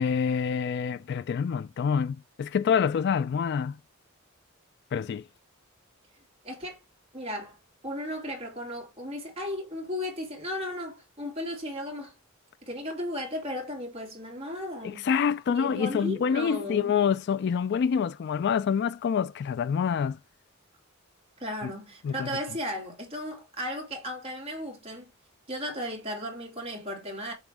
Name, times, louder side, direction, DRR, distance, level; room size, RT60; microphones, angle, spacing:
voice 1, 0.0-3.8 4.9-5.2 14.8-20.2 21.6-21.7 22.0-22.3, left 7 dB, 55° left, 0.3 m, -26 dB
voice 2, 6.4-6.8 7.1-7.6 7.8-12.1 12.6-15.1 15.6-16.9 21.4-25.1 25.5-27.3, left 1 dB, 30° right, 2.7 m, -35 dB
7.1 x 3.1 x 4.9 m
head